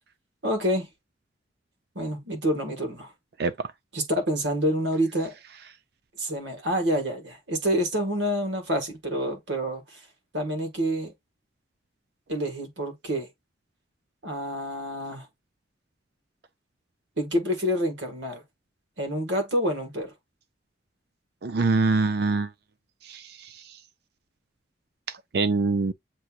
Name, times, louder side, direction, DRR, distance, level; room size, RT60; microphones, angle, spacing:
voice 1, 0.4-0.9 1.9-3.1 3.9-5.4 6.2-10.0 10.3-11.1 12.3-13.3 14.2-15.2 17.2-18.4 19.0-20.1, equal, 80° right, 1.7 m, -27 dB
voice 2, 21.4-22.5 23.0-23.5 25.3-25.9, right 3 dB, 60° right, 0.4 m, -24 dB
7.7 x 2.9 x 2.4 m
head